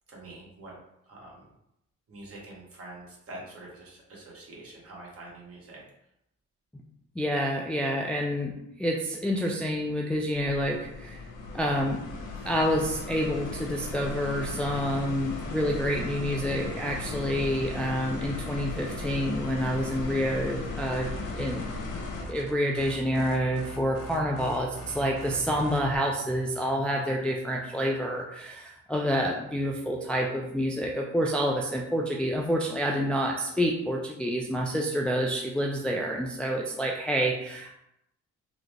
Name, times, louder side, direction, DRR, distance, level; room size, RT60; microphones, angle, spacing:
voice 1, 0.1-0.7 1.1-1.5 2.1-5.8, right 2 dB, 50° right, -4 dB, 1.4 m, -45 dB
voice 2, 7.2-8.5 8.8-11.2 11.5-12.1 12.4-21.1 21.4-21.8 22.3-37.8, equal, 5° left, -1 dB, 0.3 m, -28 dB
sound 1, 10.3-22.2, left 3 dB, 85° left, 0.7 m, -37 dB
sound 2, 20.9-26.0, left 1 dB, 50° left, 0.7 m, -43 dB
3.7 x 2.1 x 3.2 m, 0.82 s
cardioid pair, 90°, 30 cm